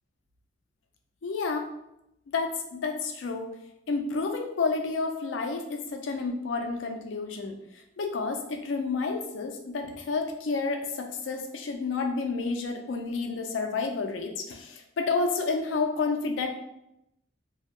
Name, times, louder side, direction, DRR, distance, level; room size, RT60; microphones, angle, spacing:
voice 1, 1.2-1.7 2.3-3.5 3.9-7.6 8.0-16.5, left 4 dB, 85° left, 4 dB, 0.4 m, -30 dB
2.3 x 2.1 x 2.9 m, 0.81 s
head